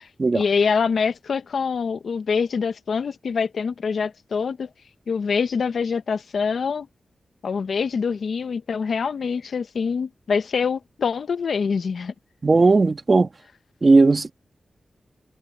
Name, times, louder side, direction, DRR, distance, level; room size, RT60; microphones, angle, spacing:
voice 1, 0.3-4.7 5.1-6.9 7.4-12.1, left 5 dB, 75° left, 0.8 m, -25 dB
voice 2, 12.4-13.3 13.8-14.3, right 3 dB, 35° right, 1.9 m, -16 dB
wide cardioid pair, 120°, 0 cm